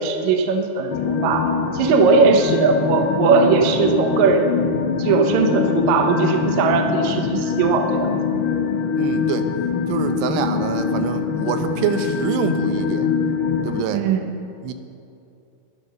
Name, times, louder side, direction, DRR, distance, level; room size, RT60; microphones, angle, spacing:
voice 1, 0.0-4.5 5.0-8.2 13.9-14.3, right 5 dB, 70° right, 4 dB, 1.7 m, -19 dB
sound 1, 0.9-13.8, left 6 dB, 80° left, 2.1 m, -23 dB
voice 2, 9.0-9.5 9.9-13.1 13.6-14.0 14.6-14.7, right 8 dB, 90° right, 8 dB, 3.0 m, -25 dB
12.0 x 11.0 x 6.4 m, 2.7 s
omnidirectional pair, 4.8 m